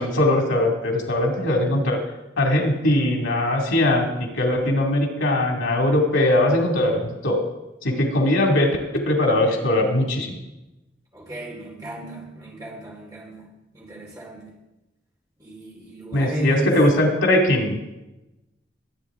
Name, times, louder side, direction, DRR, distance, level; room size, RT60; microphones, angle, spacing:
voice 1, 0.0-2.0 2.4-7.4 7.8-10.4 16.1-17.8, left 1 dB, 90° left, 1 dB, 2.4 m, -20 dB
voice 2, 11.1-13.5 13.7-14.5 15.4-16.8, equal, 20° right, -3 dB, 3.6 m, -33 dB
21.0 x 8.7 x 3.7 m, 0.99 s
head